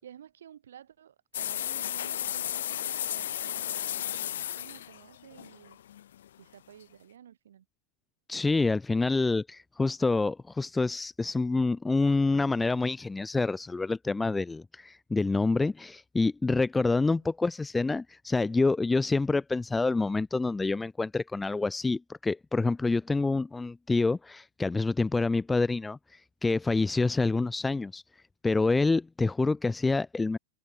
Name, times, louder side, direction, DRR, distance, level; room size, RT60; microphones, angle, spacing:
voice 1, 0.0-5.8 6.4-7.7 17.2-17.3, right 10 dB, 65° right, 6.0 m, -52 dB
sound 1, 1.3-6.3, left 11 dB, 60° left, 1.3 m, -34 dB
voice 2, 8.3-28.0 28.4-30.4, left 3 dB, 10° left, 0.4 m, -27 dB
figure-of-eight pair, 90°, 0 cm